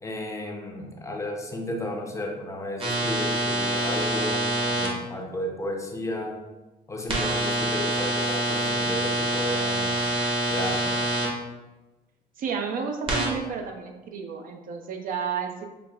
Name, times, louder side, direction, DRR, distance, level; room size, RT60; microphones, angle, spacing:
voice 1, 0.0-6.4 6.9-10.0 10.5-11.0, left 1 dB, 15° left, 1 dB, 0.5 m, -33 dB
sound 1, 2.8-4.9 7.1-11.3 13.1-13.3, right 1 dB, 30° right, 1.0 m, -26 dB
voice 2, 12.4-15.7, right 6 dB, 55° right, 4 dB, 0.5 m, -31 dB
5.8 x 2.4 x 2.3 m, 1.1 s
cardioid pair, 110°, 17 cm